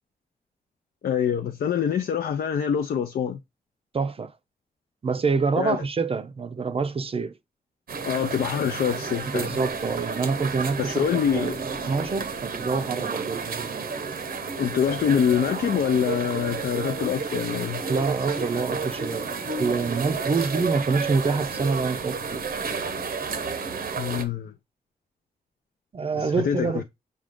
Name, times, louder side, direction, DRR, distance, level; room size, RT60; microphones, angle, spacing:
voice 1, 1.0-3.4 5.6-5.8 8.0-9.5 10.8-11.6 14.6-17.8 24.0-24.5 26.2-26.8, left 8 dB, 80° left, 0.5 m, -25 dB
voice 2, 3.9-4.3 5.0-7.3 9.3-11.1 11.3-13.9 17.9-19.3 19.6-22.4 25.9-26.8, right 4 dB, 40° right, 0.5 m, -26 dB
sound 1, 7.9-24.2, right 5 dB, 75° right, 0.8 m, -31 dB
6.2 x 2.3 x 3.6 m
wide cardioid pair, 120°, 16 cm